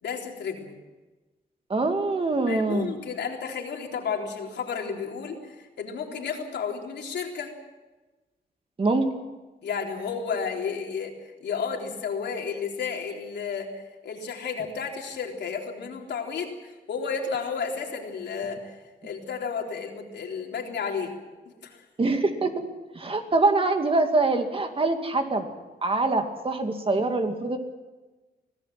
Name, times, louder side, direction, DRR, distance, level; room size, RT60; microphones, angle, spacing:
voice 1, 0.0-0.7 2.5-7.5 9.6-11.1 11.4-21.1 21.5-21.8, left 6 dB, 85° left, 1 dB, 3.9 m, -32 dB
voice 2, 1.7-3.0 8.8-9.1 22.0-22.7 22.9-25.5 25.8-27.6, right 3 dB, 30° right, 5 dB, 2.4 m, -24 dB
25.5 x 17.5 x 7.7 m, 1.2 s
wide cardioid pair, 135°, 17 cm